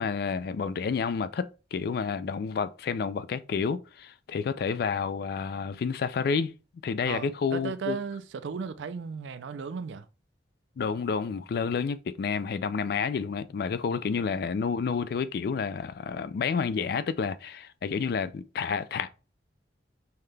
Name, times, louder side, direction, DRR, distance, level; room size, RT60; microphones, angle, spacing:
voice 1, 0.0-6.5 6.8-8.0 10.8-19.1, left 5 dB, 55° left, 0.3 m, -30 dB
voice 2, 7.1-10.1 13.9-14.0, right 5 dB, 85° right, 0.4 m, -35 dB
5.6 x 2.2 x 3.3 m
head